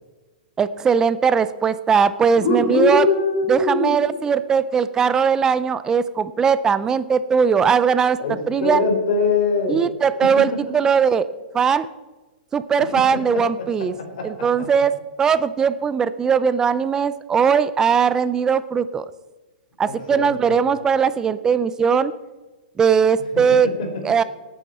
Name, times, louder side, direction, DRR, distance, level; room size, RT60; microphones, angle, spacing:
voice 1, 0.6-3.0 3.5-8.2 8.5-8.8 9.7-11.3 11.5-11.9 12.5-13.9 14.2-14.9 15.2-19.1 19.8-22.1 22.8-23.7 24.0-24.2, right 6 dB, 10° right, 15 dB, 0.5 m, -19 dB
voice 2, 2.4-4.0 8.2-8.3 8.6-9.8 13.3-13.7 14.0-14.7 19.9-20.3 23.3-23.4 23.8-23.9, left 3 dB, 55° left, 2 dB, 4.5 m, -22 dB
17.5 x 9.2 x 4.3 m, 1.2 s
hypercardioid pair, 155°, 5 cm